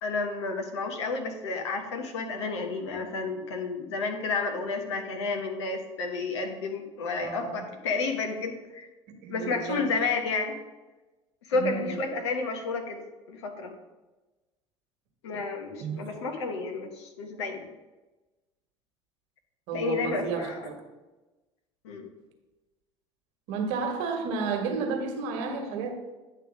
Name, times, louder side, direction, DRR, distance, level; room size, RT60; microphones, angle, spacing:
voice 1, 0.0-8.9 9.3-10.6 11.5-13.0 13.3-13.7 15.2-17.7 19.7-20.7 21.8-22.1, left 4 dB, 75° left, 4 dB, 1.1 m, -31 dB
voice 2, 7.2-7.7 9.2-9.8 11.5-12.0 15.8-16.0 19.7-20.7 23.5-25.9, right 5 dB, 65° right, 4 dB, 1.4 m, -32 dB
9.6 x 3.4 x 6.0 m, 1.1 s
hypercardioid pair, 65°, 14 cm